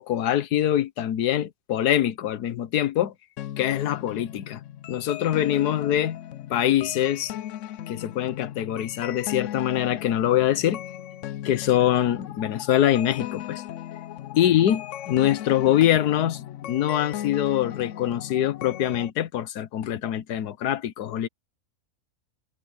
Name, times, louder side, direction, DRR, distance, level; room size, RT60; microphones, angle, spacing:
voice 1, 0.0-3.1 3.6-4.6 4.9-6.2 6.5-7.3 7.9-10.8 11.4-13.6 14.3-21.3, left 11 dB, 85° left, 1.4 m, -24 dB
sound 1, 3.4-19.1, left 12 dB, 65° left, 0.8 m, -37 dB
omnidirectional pair, 1.7 m